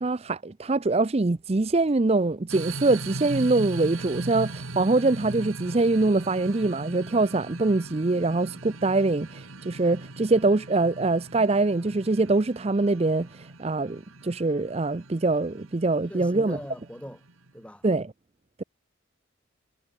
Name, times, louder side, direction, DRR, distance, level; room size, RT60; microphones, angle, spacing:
voice 1, 0.0-16.6 17.8-18.1, right 3 dB, 30° right, 0.5 m, -24 dB
sound 1, 2.5-17.6, right 2 dB, 90° right, 2.3 m, -39 dB
voice 2, 16.1-17.2 17.5-17.9, equal, 5° left, 2.6 m, -40 dB
head